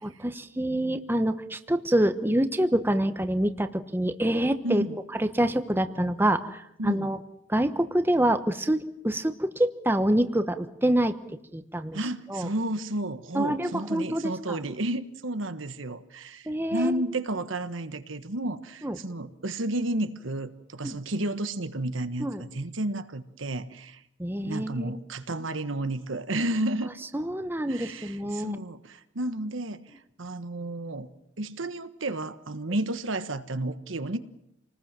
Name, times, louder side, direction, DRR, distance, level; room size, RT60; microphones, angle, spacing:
voice 1, 0.0-4.8 5.2-7.2 7.5-11.1 11.5-12.0 12.3-12.5 13.3-14.6 16.5-17.0 18.8-19.0 20.8-21.0 22.2-22.4 24.2-25.0 27.1-28.6, right 1 dB, 10° right, 9 dB, 1.1 m, -26 dB
voice 2, 4.6-5.0 6.8-7.1 11.9-24.0 24.4-26.9 27.7-31.1 31.4-34.2, right 1 dB, 80° right, 10 dB, 1.4 m, -32 dB
28.0 x 19.5 x 7.6 m, 0.77 s
head